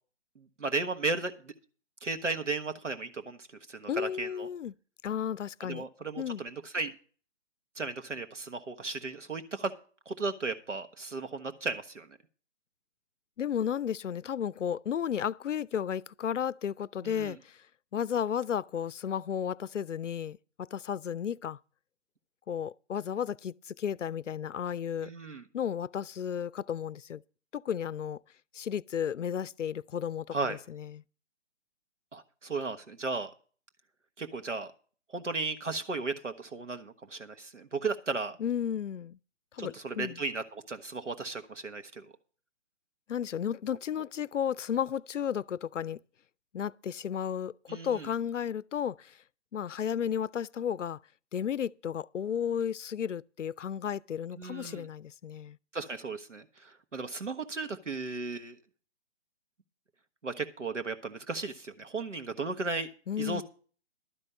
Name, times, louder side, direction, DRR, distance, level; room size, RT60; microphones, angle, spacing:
voice 1, 0.4-1.5 2.0-3.4 3.7-4.5 5.6-6.9 7.7-9.7 10.1-12.1 17.0-17.3 25.0-25.4 30.3-30.6 32.1-33.3 34.2-34.7 35.1-38.4 39.6-42.1 47.7-48.1 54.4-54.9 55.7-58.6 60.2-62.9 63.2-63.4, right 3 dB, 90° right, 1.3 m, -35 dB
voice 2, 3.9-4.7 5.0-5.9 6.2-6.4 13.4-17.6 17.9-21.6 22.5-25.1 25.5-27.2 27.5-28.2 28.5-31.0 38.4-39.2 39.5-40.2 43.1-46.0 46.5-49.2 49.5-51.0 51.3-55.6 63.1-63.4, left 8 dB, 85° left, 0.5 m, -33 dB
12.0 x 5.4 x 8.2 m
figure-of-eight pair, 140°, 36 cm